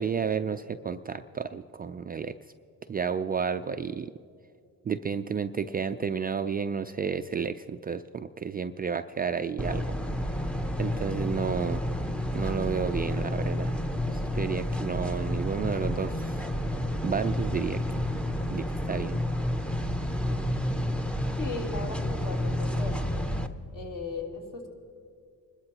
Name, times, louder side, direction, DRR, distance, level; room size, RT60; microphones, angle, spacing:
voice 1, 0.0-2.3 2.9-4.1 4.9-9.8 10.8-11.8 12.3-13.8 14.1-16.5 17.0-17.8 18.5-19.2, right 6 dB, 25° right, 9 dB, 0.3 m, -31 dB
sound 1, 9.6-23.5, left 1 dB, 5° left, 0.7 m, -30 dB
voice 2, 20.3-20.7 21.4-22.9 23.7-24.7, left 3 dB, 55° left, -3 dB, 3.3 m, -37 dB
25.5 x 13.0 x 2.9 m, 2.2 s
cardioid pair, 80°, 38 cm